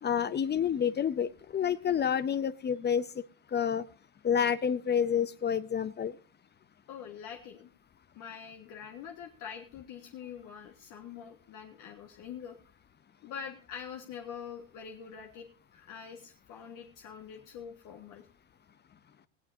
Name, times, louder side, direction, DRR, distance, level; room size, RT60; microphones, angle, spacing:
voice 1, 0.0-3.0 3.5-3.8 4.2-6.1, left 8 dB, 25° left, 16 dB, 0.7 m, -28 dB
voice 2, 6.9-7.7 8.2-12.6 13.2-18.3, left 7 dB, 55° left, 3 dB, 1.9 m, -45 dB
18.5 x 15.0 x 2.7 m, 0.35 s
supercardioid pair, 105°, 37 cm